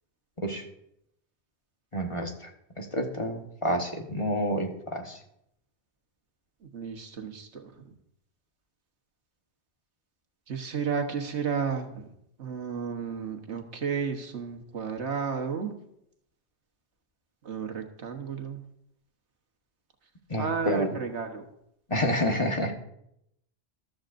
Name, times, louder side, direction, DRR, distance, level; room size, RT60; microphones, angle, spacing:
voice 1, 1.9-2.5 2.8-5.2 20.3-20.9 21.9-22.7, equal, 30° left, 2 dB, 1.3 m, -29 dB
voice 2, 6.6-7.9 10.5-12.1 12.4-15.7 17.4-18.6 20.4-21.5, right 6 dB, 85° right, 5 dB, 1.5 m, -33 dB
14.0 x 12.5 x 2.6 m, 0.76 s
omnidirectional pair, 1.1 m